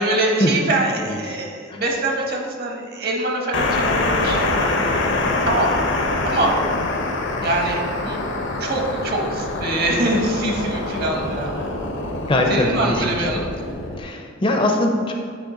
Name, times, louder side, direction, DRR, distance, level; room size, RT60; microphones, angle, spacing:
voice 1, 0.0-4.7 5.4-5.7 6.2-6.5 7.4-8.2 8.6-11.7 12.5-13.5, right 2 dB, 50° right, 1 dB, 1.0 m, -24 dB
sound 1, 3.5-14.0, left 2 dB, 65° left, 0.7 m, -24 dB
voice 2, 12.3-13.3 14.0-15.1, left 1 dB, 25° left, 3 dB, 0.5 m, -21 dB
8.5 x 3.5 x 3.8 m, 2.1 s
head